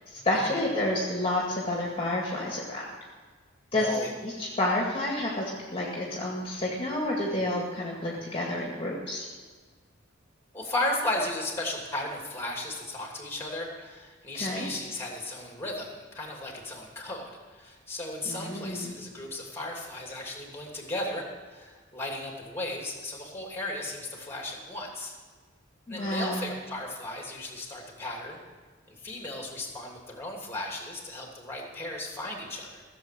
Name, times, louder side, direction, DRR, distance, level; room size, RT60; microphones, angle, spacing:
voice 1, 0.1-2.9 3.7-9.3 14.3-14.7 18.3-19.0 25.9-26.4, left 1 dB, 30° left, -3 dB, 2.1 m, -29 dB
voice 2, 3.7-4.1 10.5-25.1 25.9-28.4 28.9-32.8, left 1 dB, 10° left, 0 dB, 2.8 m, -35 dB
16.0 x 7.4 x 7.5 m, 1.5 s
head